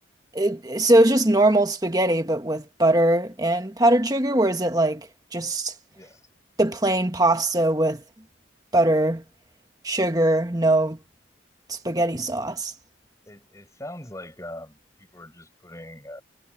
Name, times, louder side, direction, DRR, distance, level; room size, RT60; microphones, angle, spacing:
voice 1, 0.3-5.7 6.6-8.0 8.7-9.2 9.8-11.0 11.7-12.7, right 1 dB, 20° right, 1.7 m, -21 dB
voice 2, 5.9-6.2 13.3-16.2, left 1 dB, 15° left, 5.3 m, -41 dB
head